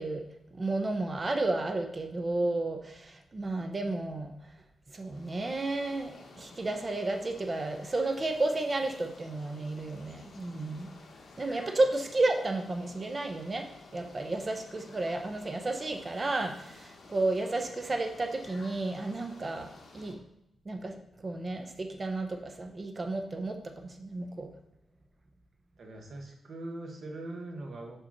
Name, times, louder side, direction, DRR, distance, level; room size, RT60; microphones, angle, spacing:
voice 1, 0.0-4.5 4.9-10.9 11.4-13.7 13.9-19.7 19.9-20.2 20.6-24.5, right 2 dB, 25° right, 5 dB, 0.7 m, -32 dB
sound 1, 5.0-20.1, left 3 dB, 60° left, 1.1 m, -53 dB
voice 2, 25.8-28.0, right 2 dB, 50° right, 1 dB, 1.2 m, -41 dB
5.4 x 4.2 x 5.9 m, 0.81 s
wide cardioid pair, 170°, 0 cm